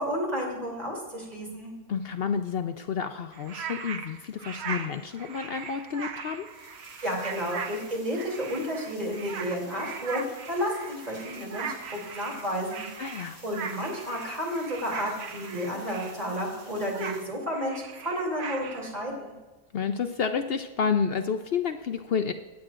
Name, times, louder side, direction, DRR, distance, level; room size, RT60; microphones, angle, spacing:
voice 1, 0.0-1.7 7.0-13.0 13.4-19.3, equal, 25° right, -2 dB, 3.0 m, -32 dB
voice 2, 1.9-6.5 13.0-13.4 19.7-22.3, left 6 dB, 65° left, 8 dB, 0.6 m, -30 dB
sound 1, 3.3-16.4 16.8-18.9, right 6 dB, 55° right, 0.9 m, -39 dB
sound 2, 6.4-17.2, right 1 dB, 80° right, 3.7 m, -52 dB
18.5 x 8.5 x 2.5 m, 1.2 s
omnidirectional pair, 1.6 m